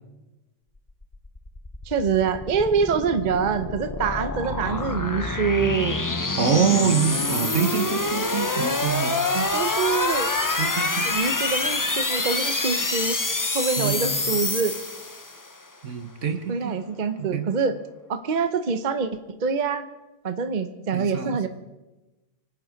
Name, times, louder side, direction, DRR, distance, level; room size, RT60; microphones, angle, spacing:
sound 1, 0.9-15.5, left 2 dB, 20° left, 0.7 m, -26 dB
voice 1, 1.9-6.1 9.5-10.3 11.0-13.2 13.5-14.8 16.5-17.8 18.1-19.9 20.2-21.5, right 5 dB, 40° right, 9 dB, 0.9 m, -25 dB
voice 2, 4.6-4.9 6.4-9.5 10.5-11.1 13.8-14.3 15.8-16.7 17.2-17.5 20.9-21.4, right 7 dB, 75° right, 8 dB, 1.7 m, -26 dB
25.5 x 9.2 x 5.1 m, 1.1 s
omnidirectional pair, 1.3 m